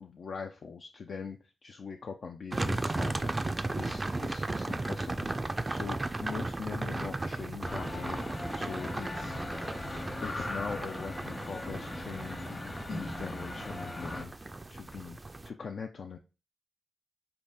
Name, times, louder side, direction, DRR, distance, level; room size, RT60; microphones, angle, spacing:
voice 1, 0.0-5.3 5.7-9.4 10.2-15.2 15.4-16.2, left 5 dB, 70° left, 3 dB, 0.3 m, -42 dB
sound 1, 2.5-15.5, right 2 dB, 35° right, 0.3 m, -36 dB
sound 2, 7.6-14.2, left 1 dB, 40° left, 1.0 m, -39 dB
3.9 x 2.1 x 3.5 m, 0.32 s
supercardioid pair, 40°, 0 cm